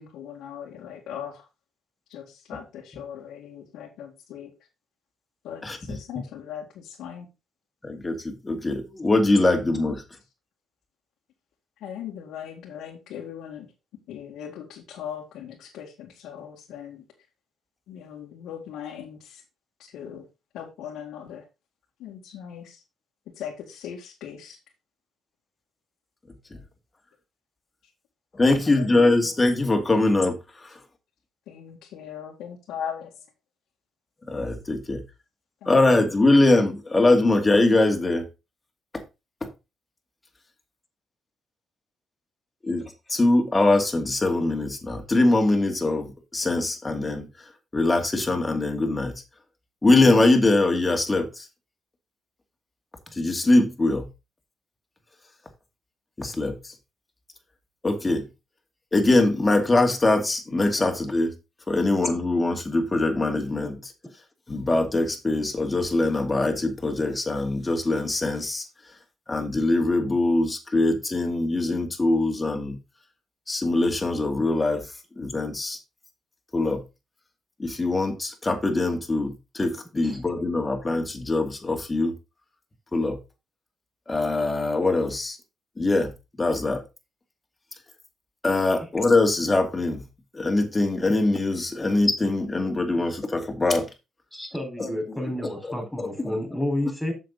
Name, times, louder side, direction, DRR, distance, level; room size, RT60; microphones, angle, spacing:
voice 1, 0.0-1.4 2.1-4.5 5.4-7.3 11.8-13.7 14.1-17.0 17.9-19.4 19.9-20.2 20.5-21.5 22.0-22.8 23.4-24.6 28.6-29.1 31.5-33.1 35.6-35.9, left 9 dB, 90° left, 2.0 m, -39 dB
voice 2, 5.6-6.0 7.8-10.0 26.5-26.6 28.3-30.7 34.3-35.0 35.7-38.3 38.9-39.0 39.4-39.5 42.6-47.3 47.7-49.1 49.8-51.5 53.1-54.1 56.2-56.7 57.8-58.3 58.9-61.3 61.7-63.9 64.5-68.7 69.3-72.8 73.5-74.9 75.2-75.8 76.5-76.8 77.6-82.1 82.9-83.2 84.1-85.4 85.8-86.1 86.4-86.8 88.4-90.0 90.3-93.9 94.8-94.9 96.0-96.3, left 2 dB, 20° left, 2.3 m, -22 dB
voice 3, 94.3-97.1, left 1 dB, 5° left, 4.4 m, -30 dB
7.7 x 6.9 x 4.0 m
cardioid pair, 90°, 0 cm